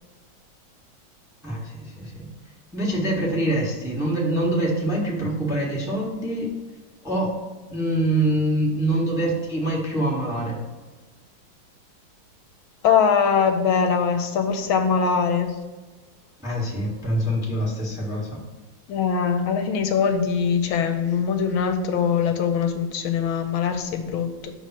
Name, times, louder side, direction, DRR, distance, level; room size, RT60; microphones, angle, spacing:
voice 1, 1.4-2.3 2.7-6.5 7.0-7.3 7.7-10.6 16.4-18.4, right 1 dB, ahead, -3 dB, 0.9 m, -25 dB
voice 2, 12.8-15.5 18.9-24.5, left 6 dB, 80° left, 6 dB, 1.5 m, -22 dB
6.3 x 3.4 x 5.7 m, 1.3 s
omnidirectional pair, 2.3 m